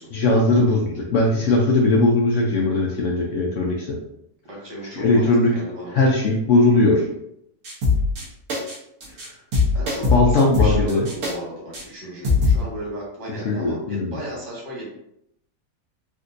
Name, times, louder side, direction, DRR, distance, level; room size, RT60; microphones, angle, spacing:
voice 1, 0.1-4.0 4.9-5.5 5.9-7.1 9.2-9.3 10.0-11.1 13.4-14.2, left 2 dB, 70° left, -1 dB, 0.7 m, -19 dB
voice 2, 4.5-5.9 9.7-14.9, right 1 dB, 90° right, -4 dB, 1.9 m, -35 dB
sound 1, 7.6-8.2 8.5-8.8 9.0-9.3 9.5-11.3 11.7-11.8 12.2-12.6, left 4 dB, 60° right, 1.4 m, -20 dB
3.7 x 2.5 x 2.5 m, 0.77 s
omnidirectional pair, 1.8 m